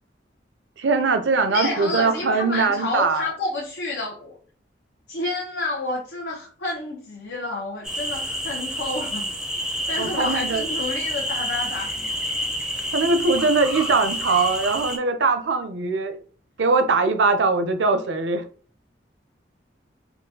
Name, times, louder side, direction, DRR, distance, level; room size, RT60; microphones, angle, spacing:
voice 1, 0.8-3.3 10.0-10.6 12.9-16.2 16.6-18.4, right 3 dB, 85° right, 0.5 m, -21 dB
voice 2, 1.5-4.4 5.1-9.3 9.9-12.1, left 2 dB, 75° left, 0.8 m, -29 dB
sound 1, 7.8-15.0, equal, 5° right, 0.4 m, -28 dB
3.7 x 2.3 x 2.7 m
head